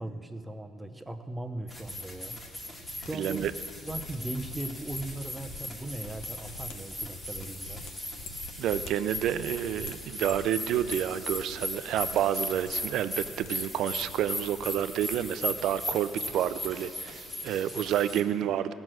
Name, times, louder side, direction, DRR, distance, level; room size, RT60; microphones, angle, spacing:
voice 1, 0.0-2.4 3.0-3.4 3.9-7.8, right 2 dB, 10° right, 6 dB, 0.7 m, -38 dB
sound 1, 1.6-2.5 2.7-11.7 11.9-12.2 12.5-13.5 13.8-14.7 14.9-15.8 16.1-16.4 16.6-16.9, left 3 dB, 65° left, 1.0 m, -47 dB
sound 2, 1.7-18.2, left 1 dB, 15° left, 1.7 m, -38 dB
voice 2, 3.1-3.5 8.6-18.7, right 10 dB, 60° right, 13 dB, 0.5 m, -29 dB
16.5 x 6.2 x 7.6 m, 2.6 s
cardioid pair, 130°, 0 cm